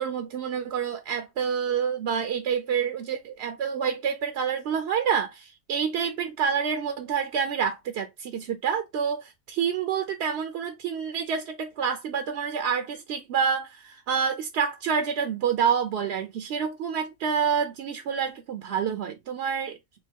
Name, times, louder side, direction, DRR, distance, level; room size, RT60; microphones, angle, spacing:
voice 1, 0.0-19.8, right 7 dB, 65° right, 0.7 m, -28 dB
3.6 x 2.5 x 4.4 m
omnidirectional pair, 1.4 m